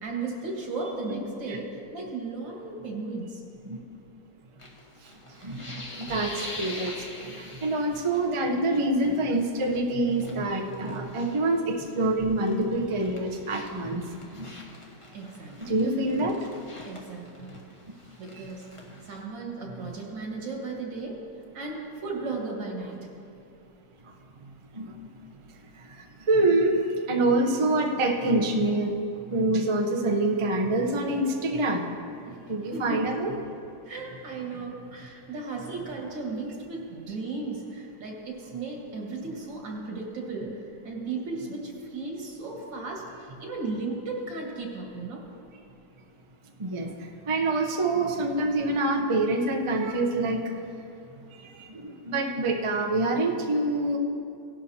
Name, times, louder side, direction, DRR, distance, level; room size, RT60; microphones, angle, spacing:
voice 1, 0.0-3.4 9.0-9.1 15.1-15.7 16.8-17.6 18.2-18.7 19.0-21.2 21.5-23.0 32.3-32.4 32.7-33.1 33.8-45.2, right 3 dB, 80° right, -1 dB, 2.4 m, -35 dB
sound 1, 4.6-8.6 8.8-9.2 9.6-12.1 12.4-19.2, left 1 dB, 25° left, 0.8 m, -44 dB
voice 2, 5.4-14.0 14.4-14.5 15.7-16.4 19.7-19.8 24.7-24.9 26.3-26.8 27.1-28.9 29.3-31.8 32.5-33.3 46.6-46.9 47.3-50.6 51.7-54.0, right 2 dB, 45° right, 2 dB, 0.3 m, -26 dB
17.5 x 11.0 x 2.8 m, 2.6 s
omnidirectional pair, 2.0 m